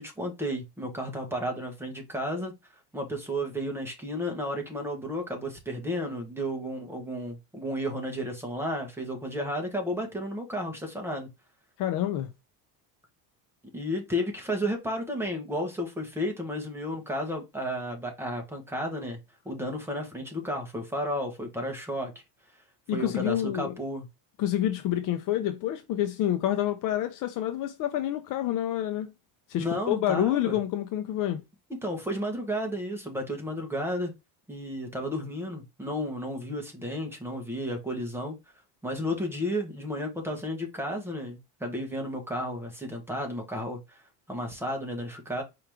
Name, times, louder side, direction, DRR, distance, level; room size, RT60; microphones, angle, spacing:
voice 1, 0.0-2.5 2.9-11.3 13.7-19.2 19.4-22.1 22.9-24.0 29.6-30.6 31.8-34.1 34.5-38.3 38.8-44.0 44.3-45.4, equal, 5° right, 1.2 m, -32 dB
voice 2, 11.8-12.3 22.9-23.7 24.4-29.1 29.5-31.4, left 12 dB, 45° left, 0.6 m, -28 dB
4.8 x 3.1 x 3.5 m
cardioid pair, 150°, 44 cm